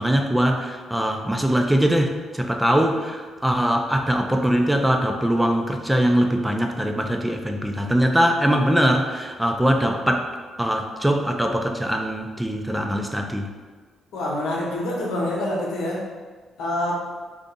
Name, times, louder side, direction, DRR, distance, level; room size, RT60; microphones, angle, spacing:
voice 1, 0.0-10.3 10.6-13.5, equal, 5° right, 3 dB, 0.3 m, -22 dB
voice 2, 14.1-16.0 16.6-17.1, left 1 dB, 90° left, -3 dB, 0.7 m, -26 dB
2.6 x 2.4 x 3.8 m, 1.4 s
cardioid pair, 90°, 0 cm